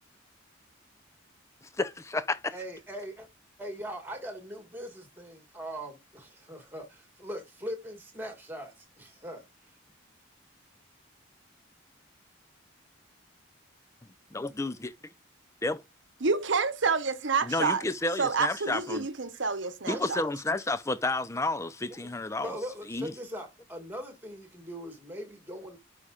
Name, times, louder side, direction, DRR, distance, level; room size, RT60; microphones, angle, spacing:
voice 1, 1.6-2.6 14.3-14.9 15.6-15.8 17.4-19.1 19.9-22.6 22.9-23.1, left 2 dB, 15° left, 0.5 m, -31 dB
voice 2, 2.5-3.3 3.6-9.7 19.8-20.0 22.0-22.1 22.4-25.8, equal, 10° right, 1.8 m, -40 dB
voice 3, 16.2-17.8 18.2-20.2, right 4 dB, 65° right, 0.9 m, -28 dB
11.5 x 4.9 x 2.4 m
head